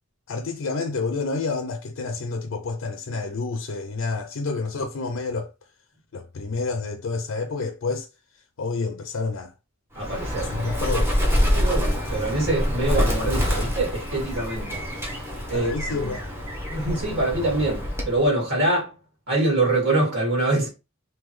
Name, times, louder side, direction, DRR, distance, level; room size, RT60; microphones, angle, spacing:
voice 1, 0.3-5.5 6.1-8.1 8.6-9.5 10.4-11.2 15.5-16.2, left 3 dB, 75° left, 0.4 m, -29 dB
Bird, 10.0-18.2, equal, 10° right, 0.9 m, -26 dB
voice 2, 10.0-10.5 11.5-14.8 15.5-15.7 16.0-16.1 16.7-18.9 19.3-20.7, right 2 dB, 60° right, 2.1 m, -24 dB
3.7 x 2.7 x 3.1 m
head